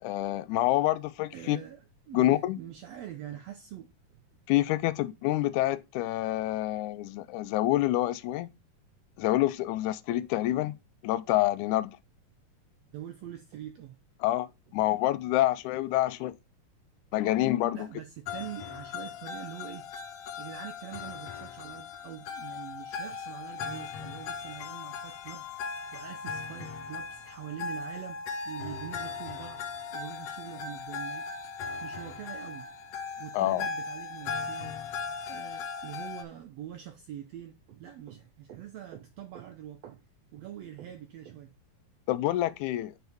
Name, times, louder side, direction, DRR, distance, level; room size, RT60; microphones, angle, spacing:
voice 1, 0.0-1.6 2.1-2.6 4.5-8.5 9.2-10.7 11.0-12.0 14.2-16.4 17.1-17.9 33.3-33.7 42.1-42.9, left 15 dB, 80° left, 1.8 m, -27 dB
voice 2, 1.3-4.2 12.9-14.0 17.7-20.0 20.4-31.5 31.8-32.7 33.2-34.8 35.3-40.0 40.3-41.5, right 11 dB, 85° right, 1.4 m, -44 dB
sound 1, 18.3-36.2, left 5 dB, 65° left, 1.7 m, -38 dB
9.4 x 4.5 x 3.4 m
omnidirectional pair, 3.8 m